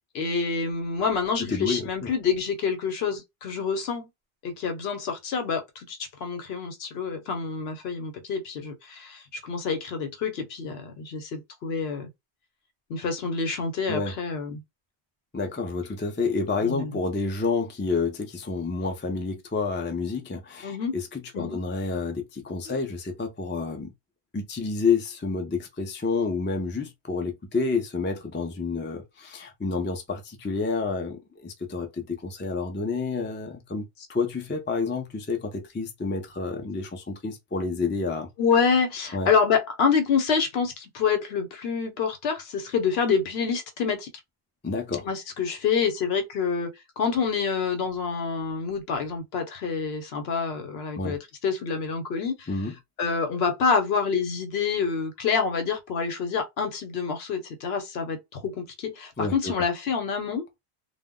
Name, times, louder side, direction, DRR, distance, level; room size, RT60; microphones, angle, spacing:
voice 1, 0.1-4.1 4.4-12.1 12.9-14.6 16.6-16.9 20.6-21.0 21.3-21.6 22.7-22.8 38.4-44.1 45.0-46.7 47.0-52.5 53.0-60.4, left 5 dB, 70° left, 0.9 m, -27 dB
voice 2, 1.4-2.1 13.9-14.1 15.3-23.9 24.3-38.3 39.1-39.3 44.6-45.1 51.0-51.1 52.5-52.7 59.2-59.5, left 4 dB, 20° left, 0.3 m, -29 dB
2.2 x 2.0 x 3.6 m
omnidirectional pair, 1.1 m